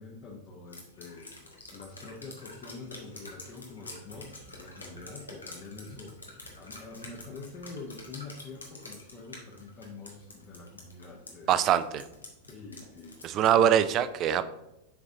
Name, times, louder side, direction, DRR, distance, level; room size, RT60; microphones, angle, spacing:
voice 1, 0.0-11.7 12.5-14.0, left 3 dB, 30° left, -2 dB, 1.1 m, -46 dB
Drip, 0.7-13.6, left 2 dB, 80° left, 1.1 m, -47 dB
voice 2, 11.5-12.0 13.2-14.4, right 10 dB, 35° right, 14 dB, 0.4 m, -23 dB
7.1 x 3.9 x 3.7 m, 0.92 s
figure-of-eight pair, 90°, 0 cm